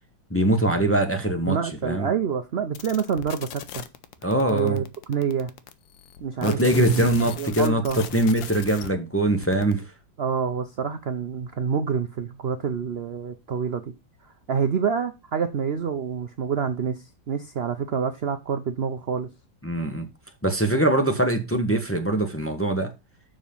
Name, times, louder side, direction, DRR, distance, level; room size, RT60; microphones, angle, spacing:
voice 1, 0.3-1.6 1.8-2.1 4.2-4.8 6.4-9.8 19.6-20.1 20.4-22.9, right 1 dB, 10° left, 0.9 m, -22 dB
voice 2, 1.5-3.8 4.5-5.5 6.2-7.1 7.4-8.1 10.2-13.9 14.2-19.3, right 6 dB, 65° right, 0.6 m, -27 dB
sound 1, 2.7-8.9 9.2-9.8, left 10 dB, 80° left, 1.5 m, -38 dB
7.0 x 6.2 x 5.5 m
omnidirectional pair, 2.0 m